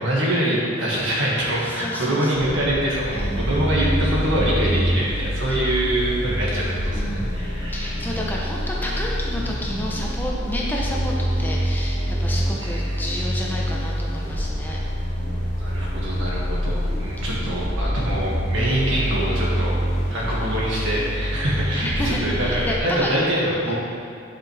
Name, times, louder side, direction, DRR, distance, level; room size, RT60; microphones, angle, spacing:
voice 1, 0.0-8.2 12.6-13.0 15.6-19.7 20.1-23.7, right 1 dB, 70° right, -6 dB, 1.9 m, -24 dB
voice 2, 1.6-2.6 3.1-3.8 5.5-5.6 6.9-14.8 16.2-16.8 20.9-21.0 21.8-22.8 23.0-23.2 23.7-23.8, equal, 10° left, -3 dB, 0.6 m, -31 dB
sound 1, 2.3-11.3, equal, 85° right, 1.4 m, -37 dB
sound 2, 3.1-22.8, equal, 30° left, 1.8 m, -26 dB
10.0 x 5.6 x 3.4 m, 2.5 s
head